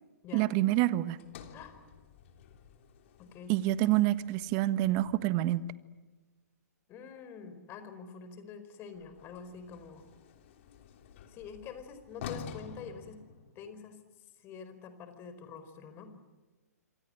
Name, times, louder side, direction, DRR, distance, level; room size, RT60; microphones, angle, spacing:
voice 1, 0.3-1.2 3.5-5.6, right 15 dB, 35° right, 14 dB, 1.4 m, -27 dB
Sliding door, 1.2-5.5 8.9-13.9, left 8 dB, 45° left, 3.2 m, -49 dB
voice 2, 3.2-3.5 6.9-10.1 11.3-13.2 13.5-14.0 14.4-16.1, left 6 dB, 25° left, 10 dB, 4.7 m, -46 dB
27.5 x 26.5 x 7.8 m, 1.2 s
hypercardioid pair, 135°, 9 cm